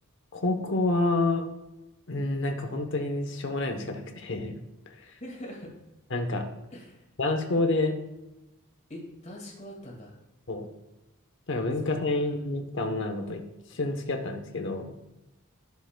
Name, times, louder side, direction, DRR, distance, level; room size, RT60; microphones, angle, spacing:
voice 1, 0.3-1.5 2.1-4.5 6.1-6.5 7.2-7.9 10.5-10.7 11.5-13.4 13.7-14.9, left 2 dB, 55° left, 5 dB, 0.9 m, -28 dB
voice 2, 5.0-5.7 6.7-7.1 8.9-10.2 11.7-11.8 12.1-12.3, equal, 30° left, -1 dB, 1.9 m, -43 dB
11.5 x 6.9 x 2.2 m, 0.96 s
head